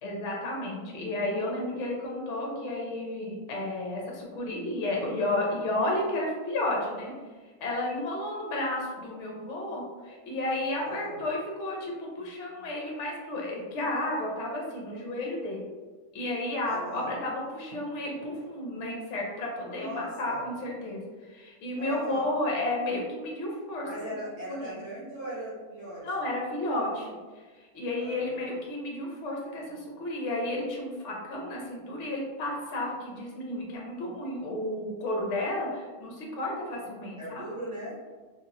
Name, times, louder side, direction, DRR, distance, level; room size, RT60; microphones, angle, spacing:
voice 1, 0.0-7.1 7.6-15.7 16.1-23.9 24.5-24.8 26.0-37.4, left 1 dB, 60° left, -2 dB, 1.0 m, -32 dB
voice 2, 10.8-11.2 16.7-17.1 19.6-20.4 21.8-22.3 23.8-26.0 28.0-28.4 37.2-38.0, equal, 55° right, -9 dB, 1.0 m, -39 dB
2.8 x 2.7 x 2.6 m, 1.4 s
omnidirectional pair, 1.6 m